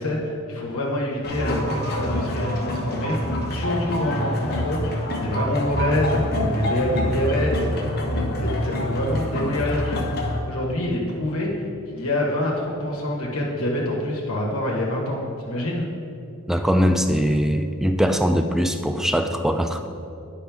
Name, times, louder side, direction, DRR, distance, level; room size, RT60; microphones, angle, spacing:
voice 1, 0.0-7.7 8.1-10.0 10.4-11.5 11.9-15.8, left 1 dB, 65° left, -3 dB, 1.2 m, -26 dB
sound 1, 1.2-10.4, equal, 45° left, 1.0 m, -26 dB
voice 2, 16.5-19.9, equal, ahead, 6 dB, 0.3 m, -21 dB
10.0 x 5.3 x 3.5 m, 2.7 s
head